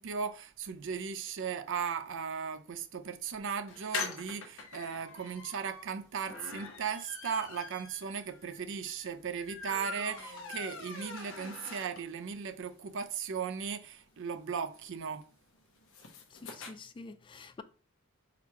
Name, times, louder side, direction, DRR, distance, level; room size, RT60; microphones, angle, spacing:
voice 1, 0.0-15.3, right 6 dB, 60° right, 0.5 m, -37 dB
sound 1, 3.7-12.3 12.7-12.8 13.0-13.1 13.3-16.7, left 4 dB, 65° left, 0.8 m, -44 dB
voice 2, 16.4-17.6, left 3 dB, 25° left, 0.3 m, -47 dB
3.9 x 3.0 x 4.5 m
head